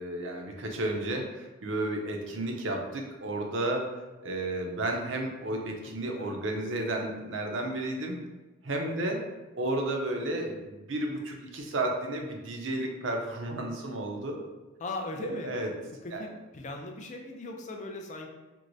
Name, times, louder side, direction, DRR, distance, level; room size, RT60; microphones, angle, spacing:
voice 1, 0.0-4.0 4.2-8.2 8.6-9.2 9.6-14.4 15.2-15.7 16.1-16.2, right 1 dB, 70° right, 1 dB, 0.6 m, -32 dB
voice 2, 5.8-6.3 8.8-9.1 14.8-15.6 16.0-18.3, left 2 dB, 35° left, 2 dB, 0.4 m, -39 dB
4.5 x 2.1 x 2.6 m, 1.1 s
head